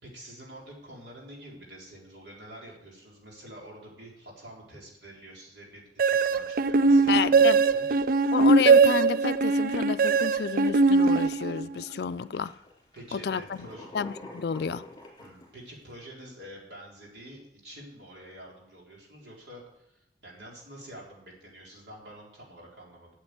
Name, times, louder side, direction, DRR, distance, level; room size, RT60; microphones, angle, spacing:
voice 1, 0.0-7.9 12.9-13.9 15.2-23.1, right 1 dB, 70° right, 4.1 m, -47 dB
sound 1, 6.0-11.8, right 4 dB, 50° right, 0.4 m, -21 dB
voice 2, 7.1-7.6 8.3-12.5 13.1-13.7 13.9-14.9, left 6 dB, 60° left, 0.4 m, -30 dB
sound 2, 9.6-9.8 10.3-10.8 11.4-11.5 11.9-15.9, left 1 dB, 20° left, 3.2 m, -47 dB
8.7 x 7.9 x 8.1 m
head